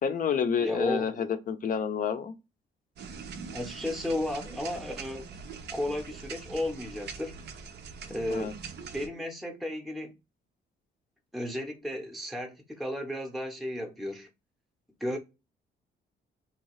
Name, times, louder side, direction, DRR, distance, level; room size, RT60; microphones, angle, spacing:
voice 1, 0.0-2.3 8.3-8.5, left 7 dB, 45° left, 0.5 m, -29 dB
voice 2, 0.6-1.3 3.5-5.3 5.7-7.3 8.1-8.6 8.9-10.1 11.3-14.3 15.0-15.2, left 1 dB, ahead, 0.6 m, -34 dB
sound 1, 3.0-9.1, right 5 dB, 60° right, 0.5 m, -43 dB
2.7 x 2.3 x 3.0 m
cardioid pair, 90°, 20 cm